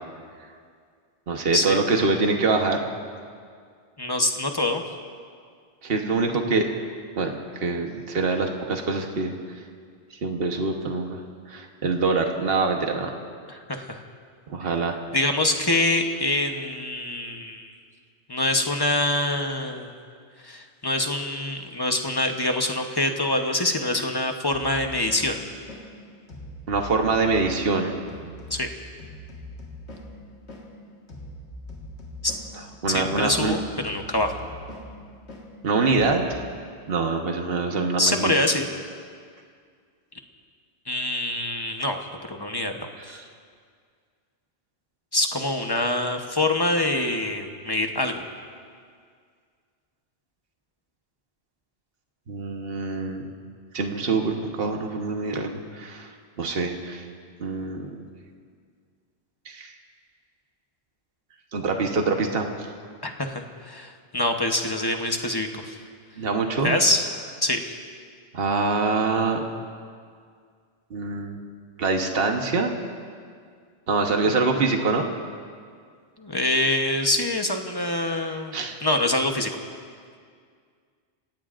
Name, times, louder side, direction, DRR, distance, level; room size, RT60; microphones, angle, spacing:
voice 1, 1.3-2.8 5.8-6.7 7.2-9.3 10.2-11.2 11.5-13.1 14.5-15.0 26.7-28.0 32.8-33.6 35.6-36.4 36.9-38.3 43.1-43.2 52.3-53.3 53.7-56.1 56.4-57.0 57.4-58.0 59.4-59.7 61.5-62.7 66.2-66.8 68.3-69.4 70.9-71.4 71.8-72.7 73.9-75.1 78.5-78.8, right 3 dB, 60° right, 3 dB, 1.4 m, -25 dB
voice 2, 4.0-4.8 13.5-14.0 15.1-17.7 18.3-19.9 20.4-25.4 28.5-28.7 32.2-32.3 32.9-34.3 38.0-38.7 40.9-42.0 42.3-43.2 45.1-48.3 63.0-65.8 66.6-67.1 67.4-67.6 74.3-74.4 76.2-78.5 78.8-79.5, left 2 dB, 25° left, 4 dB, 1.0 m, -25 dB
sound 1, 24.5-36.4, left 1 dB, 80° left, 2.0 m, -42 dB
28.5 x 17.0 x 2.6 m, 2.1 s
omnidirectional pair, 1.1 m